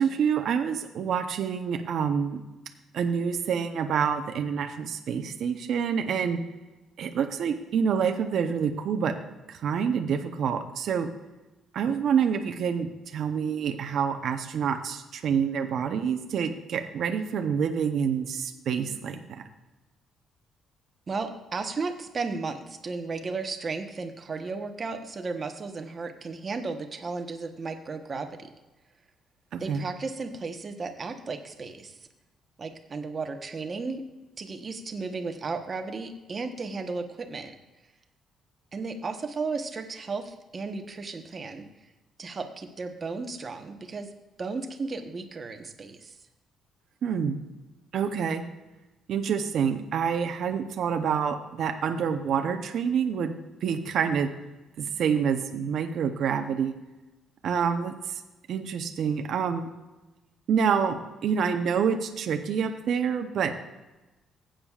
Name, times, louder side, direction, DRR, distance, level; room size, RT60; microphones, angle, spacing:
voice 1, 0.0-2.4 2.9-6.4 7.0-9.1 9.5-11.1 11.7-19.2 29.5-29.9 47.0-47.4 47.9-48.4 49.1-54.3 54.8-56.7 57.4-58.2 58.5-59.7 60.5-63.5, right 7 dB, 60° right, 6 dB, 0.7 m, -27 dB
voice 2, 21.1-28.4 29.6-31.9 32.6-34.0 34.4-37.5 38.7-41.7 42.2-44.1 44.4-46.1, right 4 dB, 30° right, 5 dB, 1.0 m, -34 dB
15.0 x 8.8 x 2.4 m, 1.1 s
cardioid pair, 140°, 0 cm